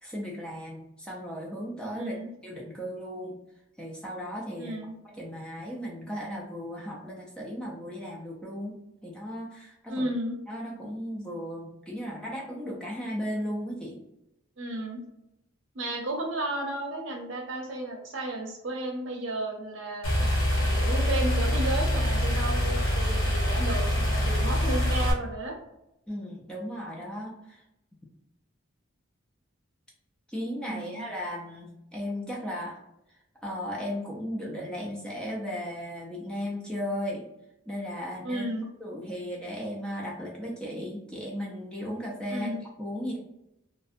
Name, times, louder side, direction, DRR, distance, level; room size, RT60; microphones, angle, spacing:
voice 1, 0.0-2.2 2.4-3.4 3.8-4.8 5.0-10.1 10.5-14.0 26.1-27.6 30.3-32.8 33.4-37.3 37.7-38.5 38.8-42.5 42.8-43.2, equal, 5° left, -3 dB, 0.4 m, -36 dB
voice 2, 1.9-2.3 4.6-4.9 9.9-10.4 14.6-15.0 15.7-25.5 30.6-31.0 38.2-38.6 42.3-42.6, right 1 dB, 70° right, 0 dB, 0.7 m, -33 dB
sound 1, 20.0-25.1, equal, 75° left, 0.8 m, -25 dB
2.6 x 2.1 x 2.5 m, 0.87 s
head